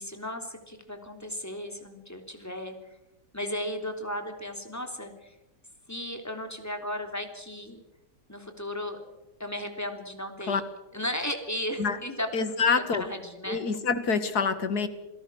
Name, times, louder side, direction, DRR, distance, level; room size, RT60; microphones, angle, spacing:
voice 1, 0.0-2.7 3.3-5.3 5.9-7.8 8.3-9.0 9.4-10.6 10.9-12.3 12.9-13.6, left 1 dB, 10° left, 5 dB, 3.3 m, -35 dB
voice 2, 12.3-13.0 13.5-14.9, left 5 dB, 60° left, 11 dB, 2.3 m, -26 dB
27.5 x 17.5 x 6.4 m, 0.96 s
omnidirectional pair, 1.9 m